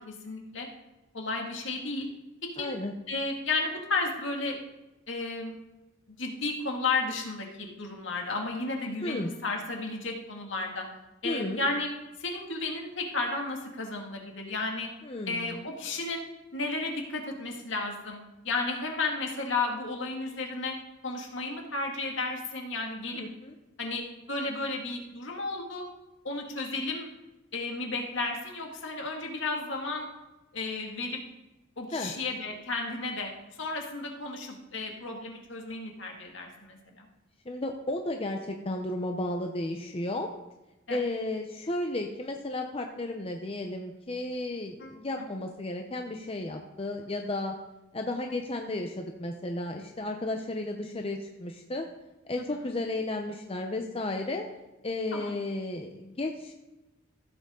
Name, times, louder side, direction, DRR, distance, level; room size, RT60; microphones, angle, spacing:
voice 1, 0.1-0.7 1.1-2.1 2.6-2.7 3.1-4.6 5.1-5.6 6.1-10.9 11.2-11.9 12.2-14.9 15.3-16.2 16.5-18.2 18.4-20.8 21.0-23.2 23.8-25.8 26.2-27.1 27.5-30.1 30.5-31.2 31.8-33.3 33.6-37.1 40.9-41.0 44.8-45.3 55.1-55.3, left 3 dB, 65° left, 1 dB, 2.1 m, -33 dB
voice 2, 2.6-2.9 9.0-9.3 11.2-11.7 15.0-15.7 23.1-23.5 31.9-32.1 37.5-40.3 40.9-47.5 47.9-51.8 52.3-54.4 54.8-56.5, left 2 dB, 30° left, 3 dB, 0.7 m, -33 dB
15.5 x 7.9 x 3.8 m, 1.0 s
head